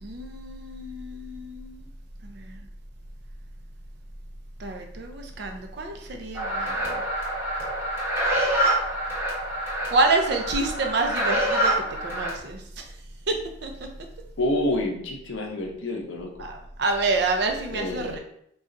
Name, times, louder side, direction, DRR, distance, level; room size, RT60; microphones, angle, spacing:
voice 1, 0.0-1.9 2.2-2.6 4.6-7.0 9.9-11.7 12.0-12.6 13.3-13.4 13.6-13.7 16.4-18.2, right 3 dB, 55° right, 4 dB, 0.4 m, -27 dB
sound 1, 6.3-12.3, right 1 dB, 10° right, 0.9 m, -26 dB
voice 2, 14.4-16.3 17.7-18.2, left 1 dB, 70° left, 1 dB, 0.6 m, -28 dB
4.0 x 2.3 x 2.5 m, 0.70 s
head